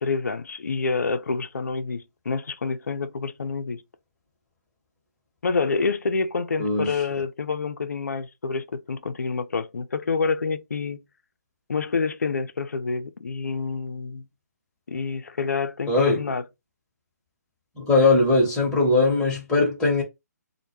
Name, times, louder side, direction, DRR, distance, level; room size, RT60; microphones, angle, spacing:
voice 1, 0.0-3.8 5.4-11.0 11.7-14.3 14.9-16.4, left 4 dB, 70° left, 0.4 m, -27 dB
voice 2, 6.6-7.0 15.9-16.2 17.8-20.0, left 2 dB, 10° left, 0.9 m, -20 dB
2.1 x 2.1 x 3.0 m
figure-of-eight pair, 140°, 9 cm